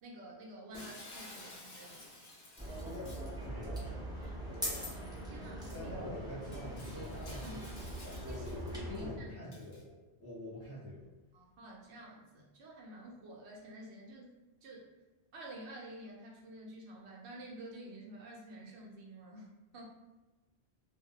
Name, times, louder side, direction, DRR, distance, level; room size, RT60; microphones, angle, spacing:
voice 1, 0.0-2.1 4.2-5.9 6.6-6.7 7.3-7.7 8.3-8.5 8.7-9.5 11.3-14.3 14.6-14.9 15.3-19.8, right 1 dB, 90° right, -2 dB, 0.9 m, -50 dB
Shatter, 0.7-3.4 5.2-5.3 5.7-5.9 6.4-8.7 9.5-9.8, left 2 dB, 50° left, 0.7 m, -52 dB
sound 1, 2.6-9.1, equal, 5° right, 0.4 m, -41 dB
voice 2, 3.4-3.8 5.7-7.6 8.0-9.9 10.2-11.0, left 1 dB, 15° left, -10 dB, 0.8 m, -45 dB
2.2 x 2.0 x 2.7 m, 1.1 s
omnidirectional pair, 1.1 m